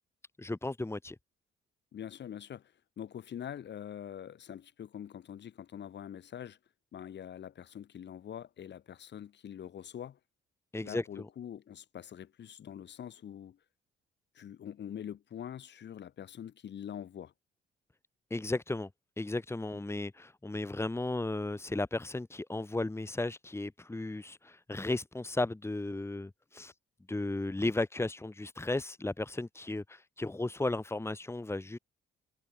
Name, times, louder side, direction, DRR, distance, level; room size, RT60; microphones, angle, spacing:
voice 1, 0.4-1.2 10.7-11.3 18.3-18.9 19.2-26.7 27.1-31.8, left 2 dB, 15° left, 2.4 m, -35 dB
voice 2, 1.9-6.6 6.9-10.2 10.8-13.6 14.3-17.3, left 9 dB, 60° left, 4.3 m, -44 dB
cardioid pair, 90°, 20 cm